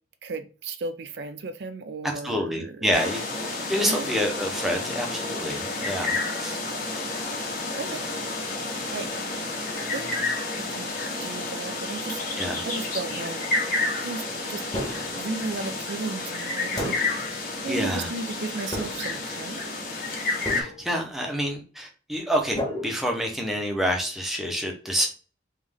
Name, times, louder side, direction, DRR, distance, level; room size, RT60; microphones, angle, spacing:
voice 1, 0.2-2.9 3.8-4.1 7.8-8.0 8.9-9.1 9.6-9.7 9.9-10.1 10.5-10.9 11.2-12.2 12.6-13.4 14.0-17.0 17.6-19.8, right 3 dB, 60° right, 0.4 m, -35 dB
voice 2, 2.2-6.6 12.4-12.6 17.7-18.1 20.5-25.1, equal, ahead, 0.8 m, -28 dB
sound 1, 2.9-20.6, left 2 dB, 45° left, 1.1 m, -30 dB
sound 2, 14.7-15.3 16.8-17.3 18.7-19.3 20.5-21.0 22.6-23.6, left 1 dB, 20° left, 1.3 m, -33 dB
3.5 x 3.2 x 3.5 m
head